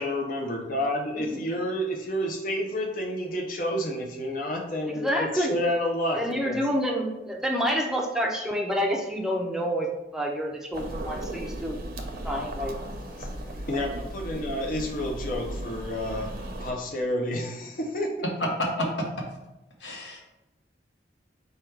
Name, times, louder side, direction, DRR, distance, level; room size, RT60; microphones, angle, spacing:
voice 1, 0.0-6.7 13.0-16.3 16.6-18.2, equal, 50° left, 0 dB, 0.6 m, -30 dB
voice 2, 4.8-5.5 6.2-9.9 10.1-11.8 12.2-12.8, equal, 5° right, 0 dB, 0.5 m, -28 dB
sound 1, 10.7-16.7, right 1 dB, 55° right, 0.6 m, -36 dB
voice 3, 18.2-19.2 19.8-20.2, equal, 85° left, 0 dB, 1.1 m, -29 dB
4.9 x 2.3 x 4.4 m, 0.95 s
head